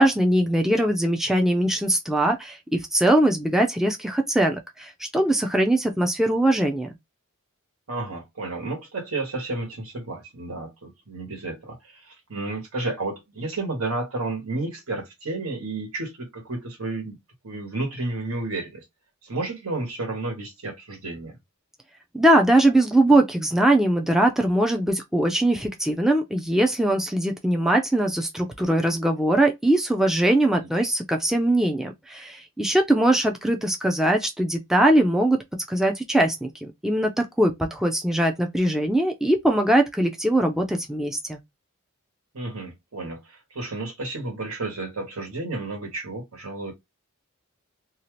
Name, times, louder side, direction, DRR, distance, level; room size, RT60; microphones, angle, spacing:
voice 1, 0.0-6.9 22.1-35.4 35.7-41.4, right 1 dB, ahead, 0.4 m, -21 dB
voice 2, 7.9-17.2 17.4-18.8 19.2-21.4 30.6-30.7 42.3-46.7, right 2 dB, 75° right, 1.3 m, -32 dB
2.7 x 2.4 x 3.1 m
head